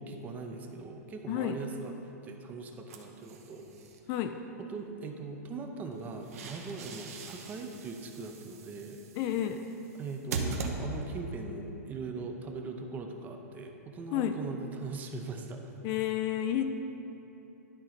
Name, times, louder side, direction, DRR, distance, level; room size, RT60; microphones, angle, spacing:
voice 1, 0.0-1.9 2.2-3.7 4.6-9.0 10.0-15.7, right 3 dB, 20° right, 4 dB, 0.6 m, -40 dB
sound 1, 2.9-4.0 5.9-11.3, right 3 dB, 60° right, 1.0 m, -40 dB
voice 2, 4.1-4.4 9.1-9.6 14.1-14.4 15.8-16.6, left 11 dB, 35° left, 7 dB, 0.3 m, -30 dB
11.0 x 3.8 x 5.9 m, 2.9 s
hypercardioid pair, 145°, 9 cm